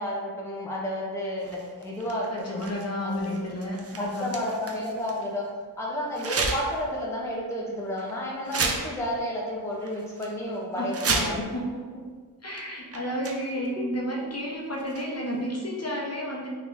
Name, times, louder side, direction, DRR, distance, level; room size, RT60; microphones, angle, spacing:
voice 1, 0.0-2.7 3.0-3.4 4.0-5.5 5.8-11.4, equal, 10° left, -4 dB, 0.6 m, -31 dB
sound 1, 1.4-5.3 6.1-6.8 7.2-7.4 8.0-8.1 8.4-9.2 9.5-9.6 9.9-10.3 10.8-11.6 12.5-12.6 12.9-13.7 14.7-15.3, right 3 dB, 40° right, 0.5 m, -32 dB
voice 2, 2.3-4.3 10.8-11.7 11.9-12.0 12.4-16.5, equal, 40° left, -3 dB, 0.8 m, -32 dB
3.5 x 3.2 x 2.5 m, 1.5 s
cardioid pair, 55°, 38 cm